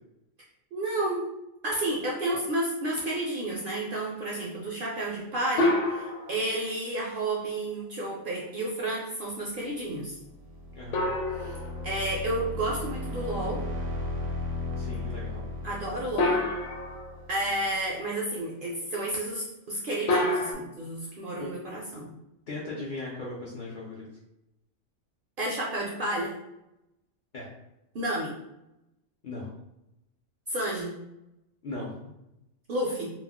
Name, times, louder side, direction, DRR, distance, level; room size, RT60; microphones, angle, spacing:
voice 1, 0.7-1.3 1.6-10.2 11.4-11.6 11.8-13.6 15.6-16.4 17.3-22.1 25.4-26.3 27.9-28.4 30.5-31.0 32.7-33.1, right 1 dB, 65° right, -3 dB, 0.5 m, -31 dB
sound 1, 5.6-6.6 10.9-12.5 16.2-17.3 20.1-20.5, left 2 dB, 75° left, 0.9 m, -28 dB
sound 2, 10.1-17.8, left 2 dB, 80° right, 0.9 m, -36 dB
voice 2, 10.7-11.0 14.7-15.4 21.1-21.5 22.5-24.1 27.3-27.5 29.2-29.5 31.6-31.9, left 2 dB, 60° left, -5 dB, 0.5 m, -38 dB
2.3 x 2.0 x 3.4 m, 0.89 s
omnidirectional pair, 1.3 m